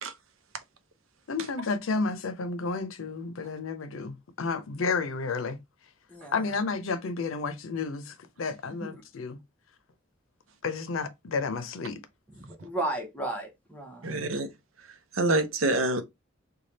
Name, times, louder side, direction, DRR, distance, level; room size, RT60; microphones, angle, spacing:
voice 1, 1.3-5.6 6.3-9.4 10.6-12.0, left 4 dB, 85° left, 0.6 m, -31 dB
voice 2, 6.1-6.4 8.8-9.0 12.4-14.2, right 1 dB, 5° left, 0.9 m, -35 dB
voice 3, 14.0-14.5 15.1-16.0, right 2 dB, 90° right, 0.7 m, -26 dB
3.2 x 2.3 x 4.0 m
head